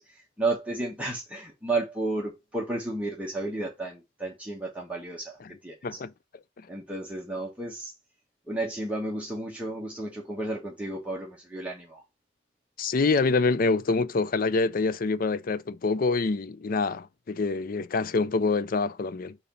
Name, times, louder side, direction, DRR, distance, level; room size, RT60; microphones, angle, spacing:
voice 1, 0.0-6.0 6.7-7.9 8.5-12.0, right 2 dB, 5° right, 1.3 m, -32 dB
voice 2, 12.8-19.4, left 4 dB, 50° left, 0.5 m, -26 dB
6.8 x 2.8 x 5.2 m
head